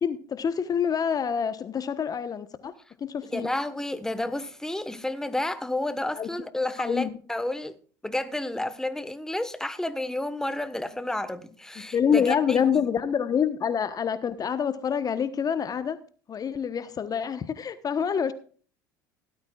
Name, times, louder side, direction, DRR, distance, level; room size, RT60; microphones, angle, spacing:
voice 1, 0.0-2.7 3.0-3.5 6.2-6.3 6.8-7.1 11.9-16.0 16.3-18.3, left 7 dB, 35° left, 1.1 m, -26 dB
voice 2, 3.3-7.8 8.0-12.7, left 1 dB, 5° left, 1.3 m, -31 dB
17.0 x 12.5 x 2.4 m
hypercardioid pair, 75°, 11 cm